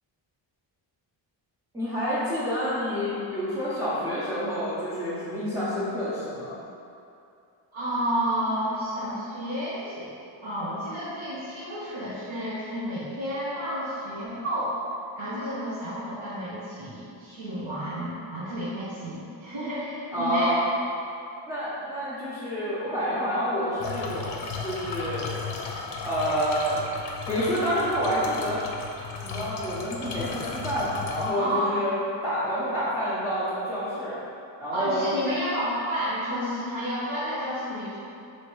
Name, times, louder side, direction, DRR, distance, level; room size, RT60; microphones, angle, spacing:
voice 1, 1.7-6.6 20.1-20.7 21.5-25.4 26.0-26.8 27.3-28.6 29.2-32.0 32.2-34.2 34.6-35.1, equal, 5° right, -12 dB, 0.8 m, -28 dB
voice 2, 7.7-10.1 10.4-14.8 15.1-20.6 31.3-31.8 34.7-38.0, equal, 55° right, -13 dB, 1.4 m, -31 dB
sound 1, 23.8-31.3, left 4 dB, 60° left, 0.6 m, -35 dB
3.2 x 2.9 x 4.5 m, 2.6 s
cardioid pair, 135°, 45 cm